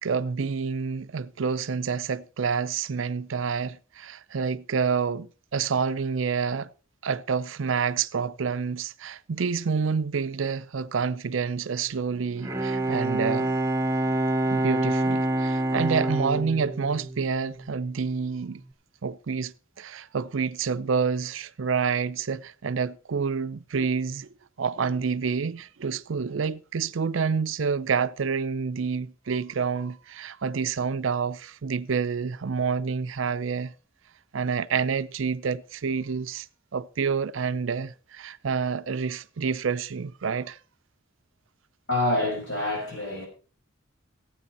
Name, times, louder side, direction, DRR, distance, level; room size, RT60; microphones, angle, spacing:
voice 1, 0.0-6.7 7.0-13.5 14.5-18.6 19.0-24.3 24.6-33.7 34.3-36.5 36.7-40.6, right 5 dB, 75° right, 0.5 m, -28 dB
Bowed string instrument, 12.2-17.9, right 1 dB, 15° right, 1.0 m, -27 dB
voice 2, 41.9-43.3, left 1 dB, 65° left, 5.8 m, -26 dB
15.0 x 9.0 x 4.2 m
head